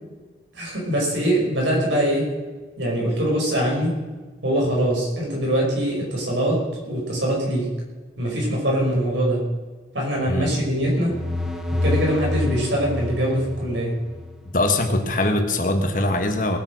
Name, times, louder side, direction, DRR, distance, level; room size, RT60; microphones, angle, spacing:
voice 1, 0.5-2.3 2.8-3.9 4.4-7.7 8.2-9.4 9.9-11.1 11.7-14.0, right 1 dB, 90° right, -2 dB, 5.5 m, -23 dB
voice 2, 10.2-10.5 14.5-16.6, left 2 dB, 45° left, 6 dB, 1.6 m, -22 dB
sound 1, 10.8-14.4, left 2 dB, ahead, 1.1 m, -27 dB
19.5 x 8.7 x 6.3 m, 1.3 s
head